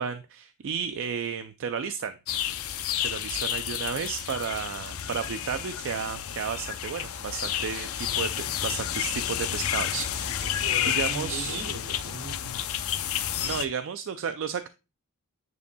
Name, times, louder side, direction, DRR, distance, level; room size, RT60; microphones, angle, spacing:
voice 1, 0.0-2.2 3.0-10.5 10.8-11.6 13.4-14.7, right 7 dB, 60° right, 0.4 m, -33 dB
sound 1, 2.3-13.6, left 10 dB, 65° left, 0.6 m, -31 dB
voice 2, 3.2-3.7 10.4-12.6, right 1 dB, 80° right, 1.4 m, -40 dB
9.2 x 5.4 x 2.2 m
head